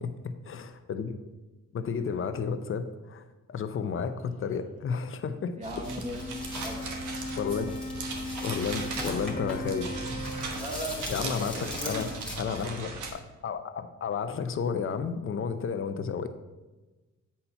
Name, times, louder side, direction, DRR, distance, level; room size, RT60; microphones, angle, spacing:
voice 1, 0.5-1.2 1.7-3.2 3.5-5.6 7.4-7.7 8.4-9.9 11.1-12.1 12.4-16.3, left 6 dB, 45° left, 9 dB, 0.7 m, -32 dB
voice 2, 5.6-6.4 6.6-7.1 10.6-12.2, equal, 25° right, 0 dB, 1.7 m, -38 dB
sound 1, 5.6-13.1, right 3 dB, 85° right, 1.3 m, -38 dB
sound 2, 5.8-12.4, left 1 dB, 5° left, 1.8 m, -41 dB
Wind instrument woodwind instrument, 6.1-10.9, left 1 dB, 25° left, 1.1 m, -38 dB
8.4 x 4.3 x 5.6 m, 1.2 s
cardioid pair, 115°, 29 cm